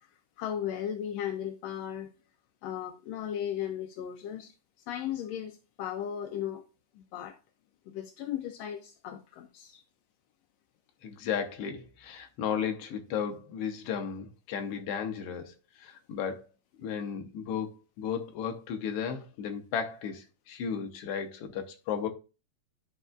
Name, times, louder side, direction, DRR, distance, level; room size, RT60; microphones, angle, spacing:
voice 1, 0.4-2.1 2.6-4.5 4.9-6.6 7.0-7.4 7.9-9.8, left 10 dB, 80° left, 1.5 m, -36 dB
voice 2, 11.0-16.4 16.8-22.1, left 7 dB, 65° left, 1.6 m, -34 dB
11.0 x 5.4 x 2.4 m
omnidirectional pair, 3.5 m